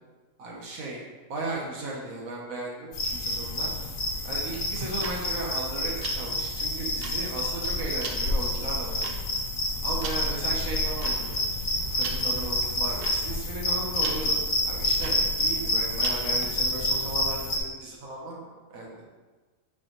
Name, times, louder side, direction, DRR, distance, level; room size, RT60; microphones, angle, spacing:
voice 1, 0.4-1.0 1.3-3.7 4.2-9.1 9.8-11.4 11.9-14.4 14.6-18.9, right 2 dB, 75° right, -3 dB, 1.4 m, -36 dB
sound 1, 2.9-17.6, left 1 dB, 65° left, 1.5 m, -28 dB
sound 2, 4.7-16.5, right 3 dB, 50° right, 0.8 m, -41 dB
8.0 x 4.5 x 3.0 m, 1.3 s
omnidirectional pair, 1.5 m